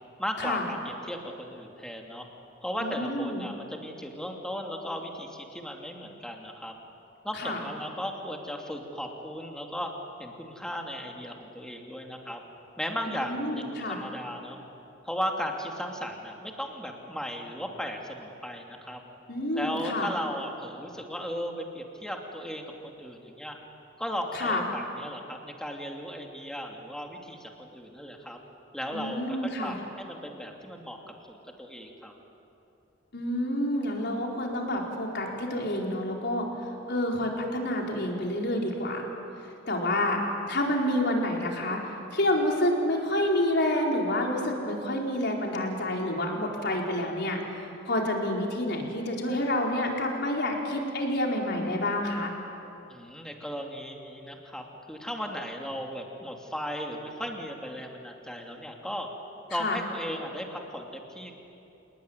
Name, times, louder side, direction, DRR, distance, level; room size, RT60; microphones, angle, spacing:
voice 1, 0.2-2.3 2.6-6.7 7.2-9.9 10.2-12.4 12.8-14.6 15.0-19.0 19.6-23.6 24.0-28.4 28.7-31.0 31.3-32.1 52.9-59.1 59.5-61.4, equal, 5° left, 1 dB, 2.8 m, -36 dB
voice 2, 2.8-3.4 7.3-7.6 13.1-14.0 19.3-20.1 24.3-24.6 28.9-29.8 33.1-36.5 36.9-39.1 39.7-40.2 40.5-47.4 47.9-52.3 59.5-59.8, left 1 dB, 60° left, 0 dB, 4.5 m, -28 dB
28.0 x 20.0 x 9.8 m, 2.8 s
head